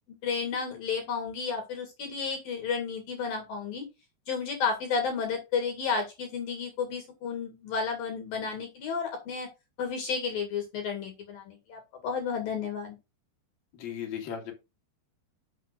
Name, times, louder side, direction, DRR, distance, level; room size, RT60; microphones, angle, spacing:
voice 1, 0.1-3.9 4.3-9.5 9.8-13.0, left 5 dB, 60° left, 4 dB, 3.5 m, -32 dB
voice 2, 13.7-14.5, left 8 dB, 45° left, 0 dB, 3.4 m, -36 dB
12.0 x 6.3 x 2.6 m, 0.25 s
omnidirectional pair, 4.9 m